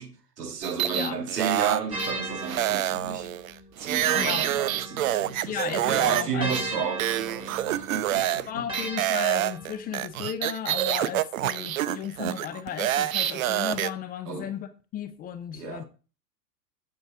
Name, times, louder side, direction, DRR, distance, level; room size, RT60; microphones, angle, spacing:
voice 1, 0.0-3.3 3.8-8.7 14.3-14.5 15.5-15.8, right 6 dB, 70° right, 2.5 m, -32 dB
sound 1, 0.6-2.1 2.5-6.2 6.5-6.6 7.0-8.4 8.7-13.9, right 12 dB, 55° right, 0.8 m, -27 dB
sound 2, 1.9-5.6 6.4-10.1, right 1 dB, 10° right, 2.9 m, -37 dB
voice 2, 4.1-4.5 5.5-6.8 8.5-15.8, left 9 dB, 20° left, 0.6 m, -35 dB
8.4 x 7.4 x 4.8 m
figure-of-eight pair, 100°, 49 cm